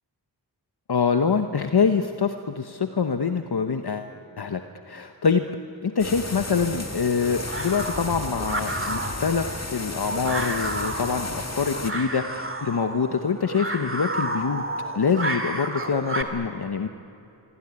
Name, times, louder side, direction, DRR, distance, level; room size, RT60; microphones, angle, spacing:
voice 1, 0.9-4.1 4.4-4.6 4.9-5.5 5.8-14.6 14.9-16.9, left 5 dB, 65° left, 7 dB, 1.0 m, -25 dB
sound 1, 6.0-11.9, left 2 dB, 40° left, 2.0 m, -34 dB
sound 2, 6.4-16.2, right 1 dB, 30° right, 2.3 m, -32 dB
25.0 x 24.5 x 9.7 m, 2.8 s
wide cardioid pair, 60°, 41 cm